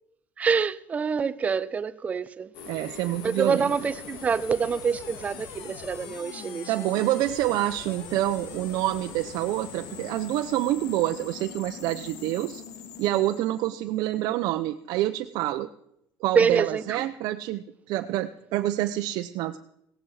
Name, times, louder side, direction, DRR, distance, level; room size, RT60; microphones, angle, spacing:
voice 1, 0.4-2.5 3.2-6.9 16.3-17.0, right 6 dB, 20° right, 0.5 m, -26 dB
sound 1, 2.5-14.5, left 7 dB, 90° left, 2.1 m, -42 dB
voice 2, 2.7-3.7 6.7-12.6 13.0-15.7 16.2-19.6, right 14 dB, 70° right, 0.7 m, -27 dB
17.5 x 15.0 x 4.9 m
cardioid pair, 175°, 7 cm